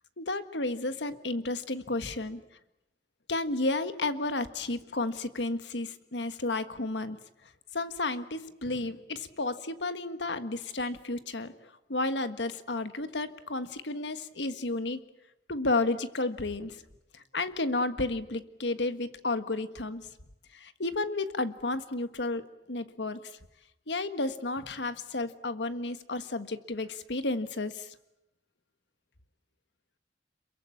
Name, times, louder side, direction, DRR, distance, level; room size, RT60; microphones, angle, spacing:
voice 1, 0.2-2.4 3.3-7.2 7.7-15.0 15.5-16.8 17.1-20.1 20.5-23.2 23.9-27.9, left 2 dB, 90° left, 10 dB, 1.6 m, -32 dB
27.5 x 23.0 x 8.6 m, 0.88 s
head